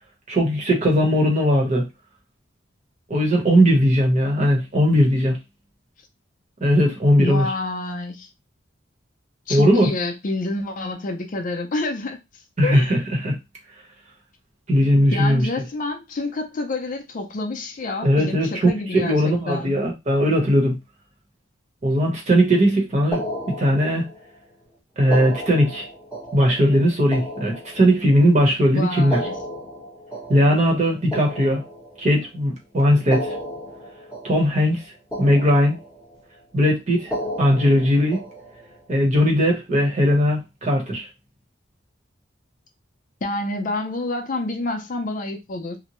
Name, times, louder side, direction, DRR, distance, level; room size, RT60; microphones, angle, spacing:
voice 1, 0.3-1.9 3.1-5.4 6.6-7.5 9.5-9.9 12.6-13.4 14.7-15.5 18.0-20.8 21.8-23.2 23.6-24.1 25.0-25.9 26.3-29.2 30.3-31.6 32.0-33.3 34.2-34.8 35.2-35.8 36.5-37.1 37.4-38.2 38.9-41.1, equal, 40° right, 0.9 m, -18 dB
voice 2, 7.2-8.3 9.5-12.2 12.6-13.0 15.1-19.8 28.7-29.4 43.2-45.8, left 2 dB, 45° left, 0.5 m, -28 dB
sound 1, 23.1-24.4 25.0-28.3 29.0-32.3 33.0-34.8 35.1-36.2 37.0-38.8, equal, 5° right, 0.9 m, -34 dB
2.7 x 2.1 x 3.0 m
head